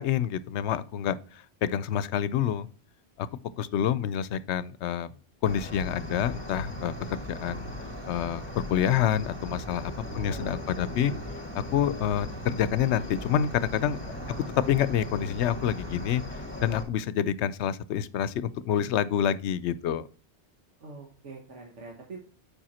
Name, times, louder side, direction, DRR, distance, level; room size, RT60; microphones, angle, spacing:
voice 1, 0.0-2.7 3.2-3.3 3.6-5.1 5.4-6.9 7.3-7.7 8.1-11.1 11.5-14.0 14.6-16.2 16.6-20.1, left 9 dB, 75° left, 0.8 m, -27 dB
Cricket, 5.4-16.8, equal, 20° left, 2.1 m, -38 dB
voice 2, 10.0-10.7 14.0-14.6 20.8-22.2, right 3 dB, 80° right, 1.5 m, -44 dB
7.6 x 5.1 x 4.2 m
omnidirectional pair, 1.2 m